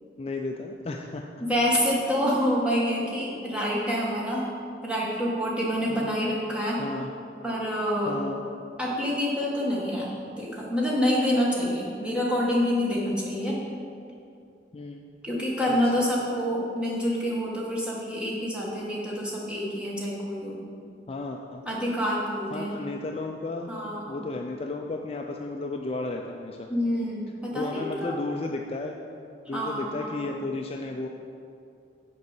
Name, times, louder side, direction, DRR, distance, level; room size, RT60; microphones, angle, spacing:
voice 1, 0.2-1.2 5.9-6.1 6.8-7.1 8.1-8.5 14.7-15.0 15.7-15.8 21.1-21.6 22.5-23.7 24.1-26.7 27.5-29.0 29.5-31.1, left 2 dB, 35° left, 2 dB, 0.4 m, -33 dB
voice 2, 1.5-4.5 4.8-6.8 7.4-8.2 8.8-13.6 15.2-20.7 21.6-22.7 23.7-24.2 26.7-28.2 29.4-30.3, equal, 5° right, -5 dB, 1.5 m, -27 dB
6.7 x 5.3 x 7.2 m, 2.5 s
head